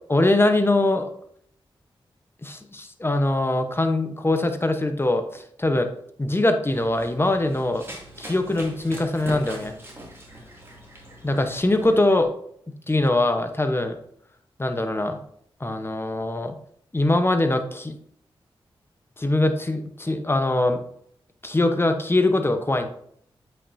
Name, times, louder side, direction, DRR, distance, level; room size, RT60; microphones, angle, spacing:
voice 1, 0.1-1.1 2.4-5.9 6.2-7.9 8.2-9.7 11.2-12.3 12.9-14.0 14.6-15.2 15.6-16.5 16.9-18.0 19.2-20.8 21.4-22.9, left 2 dB, 25° left, 7 dB, 0.9 m, -22 dB
Run, 6.7-12.2, right 1 dB, 25° right, 2.5 m, -41 dB
8.2 x 5.6 x 2.7 m, 0.66 s
cardioid pair, 50°, 10 cm